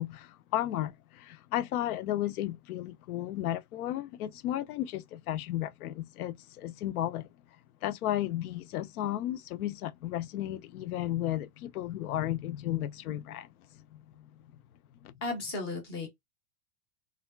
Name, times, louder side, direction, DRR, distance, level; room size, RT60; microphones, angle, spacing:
voice 1, 0.0-14.4 15.0-15.1, left 13 dB, 85° left, 0.6 m, -34 dB
voice 2, 15.2-16.1, left 3 dB, 20° left, 0.4 m, -34 dB
3.4 x 2.3 x 2.2 m
supercardioid pair, 175°, 43 cm